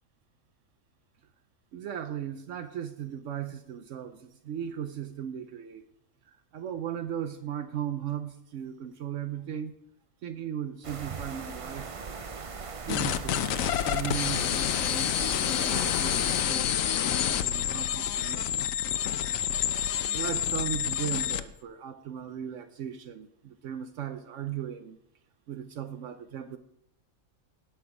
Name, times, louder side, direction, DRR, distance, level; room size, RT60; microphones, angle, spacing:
voice 1, 1.7-5.8 6.3-9.7 10.2-11.9 12.8-13.4 13.8-18.8 20.1-25.0 25.5-26.6, right 9 dB, 70° right, 10 dB, 1.0 m, -37 dB
sound 1, 10.8-16.4, right 5 dB, 40° right, 0.4 m, -39 dB
sound 2, 12.9-21.5, left 10 dB, 85° left, 1.0 m, -28 dB
17.5 x 6.0 x 4.9 m, 0.79 s
omnidirectional pair, 1.4 m